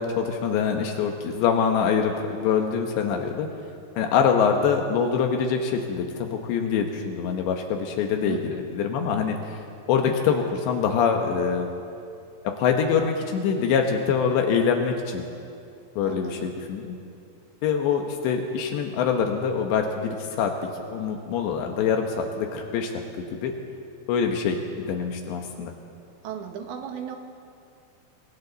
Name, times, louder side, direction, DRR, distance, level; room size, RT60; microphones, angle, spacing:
voice 1, 0.0-3.5 4.0-9.6 9.9-11.7 12.6-15.2 16.0-17.0 17.6-20.5 20.9-22.9 23.2-23.5 24.1-25.7, left 6 dB, 80° left, 3 dB, 3.4 m, -24 dB
voice 2, 8.3-8.7 16.0-16.5 26.2-27.2, right 8 dB, 90° right, 4 dB, 3.9 m, -36 dB
29.0 x 24.5 x 4.1 m, 2.5 s
omnidirectional pair, 5.1 m